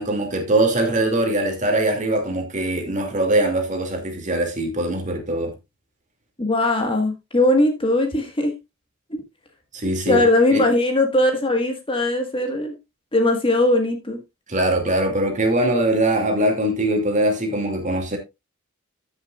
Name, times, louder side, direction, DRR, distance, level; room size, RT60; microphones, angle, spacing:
voice 1, 0.0-5.5 9.7-10.6 14.5-18.2, right 1 dB, 35° right, 2.5 m, -22 dB
voice 2, 6.4-8.5 9.1-9.2 10.1-12.7 13.1-14.2, left 1 dB, 25° left, 1.6 m, -20 dB
14.5 x 6.6 x 2.4 m
head